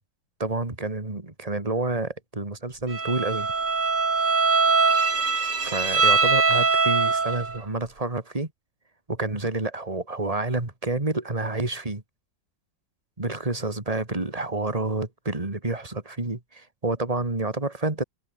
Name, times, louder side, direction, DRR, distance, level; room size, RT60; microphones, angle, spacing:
voice 1, 0.4-3.5 5.6-8.5 9.1-12.0 13.2-18.0, right 2 dB, 20° right, 2.9 m, -29 dB
Bowed string instrument, 2.9-7.6, right 4 dB, 65° right, 3.9 m, -22 dB
omnidirectional pair, 2.0 m